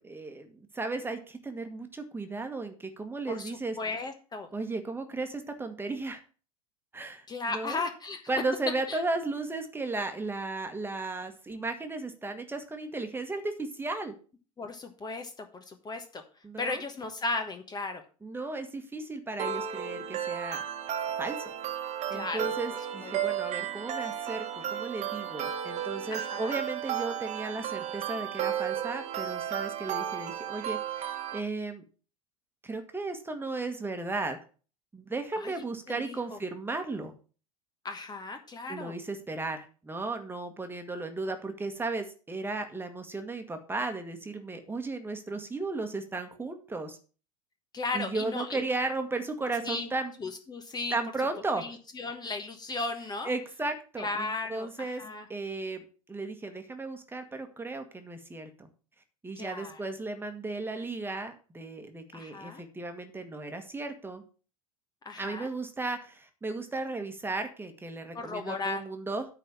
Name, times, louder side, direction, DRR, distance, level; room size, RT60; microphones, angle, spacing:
voice 1, 0.0-3.8 4.5-6.2 6.9-7.8 8.3-14.1 16.4-16.8 18.2-20.6 21.2-21.5 22.1-31.8 32.6-34.4 34.9-37.1 38.7-47.0 47.9-50.1 50.9-51.6 53.2-55.0 55.3-58.7 59.2-64.2 65.2-69.3, right 3 dB, 10° right, 6 dB, 1.5 m, -35 dB
voice 2, 3.3-4.5 7.3-8.2 8.9-9.0 14.6-16.2 16.6-18.0 22.1-22.5 23.0-23.1 26.1-26.6 35.4-35.5 35.9-36.4 37.8-38.9 47.7-48.6 49.6-49.9 50.2-51.0 51.6-53.3 54.0-55.2 59.4-59.8 62.1-62.6 65.0-65.5 68.1-68.8, left 3 dB, 20° left, 6 dB, 1.2 m, -36 dB
sound 1, 19.4-31.4, right 9 dB, 40° right, 1.4 m, -34 dB
9.1 x 4.1 x 7.0 m, 0.38 s
hypercardioid pair, 85°, 18 cm